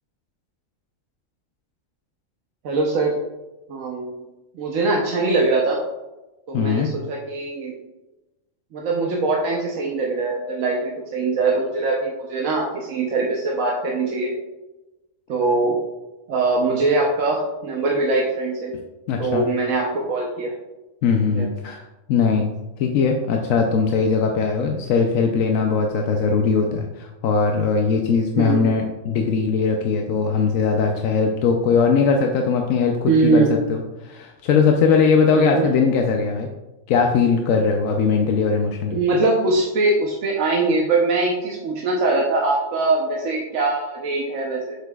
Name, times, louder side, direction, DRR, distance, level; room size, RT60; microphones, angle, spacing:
voice 1, 2.6-3.2 3.7-4.1 4.5-5.8 6.5-7.8 8.7-14.3 15.3-15.8 16.3-18.7 19.2-20.5 21.3-21.5 28.4-28.8 33.1-33.5 35.3-35.8 38.9-44.8, right 3 dB, 85° right, -2 dB, 1.2 m, -22 dB
voice 2, 6.5-6.9 19.1-19.5 21.0-21.8 22.1-22.5 22.8-36.5 36.9-39.0, left 5 dB, 90° left, 2 dB, 1.0 m, -20 dB
8.0 x 6.7 x 2.3 m, 1.1 s
omnidirectional pair, 1.3 m